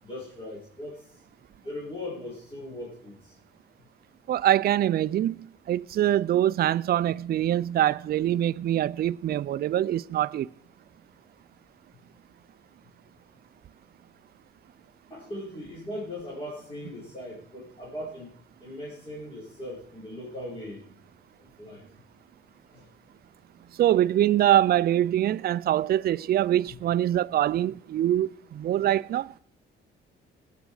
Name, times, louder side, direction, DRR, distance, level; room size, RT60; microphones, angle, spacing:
voice 1, 0.0-1.1 1.6-3.4 15.1-18.3 18.6-20.8 21.6-21.8 22.7-22.9, left 1 dB, 25° left, 5.4 m, -39 dB
voice 2, 4.3-5.3 5.7-10.5 23.8-29.3, right 12 dB, 50° right, 0.4 m, -24 dB
18.0 x 9.4 x 4.9 m
cardioid pair, 90°, 20 cm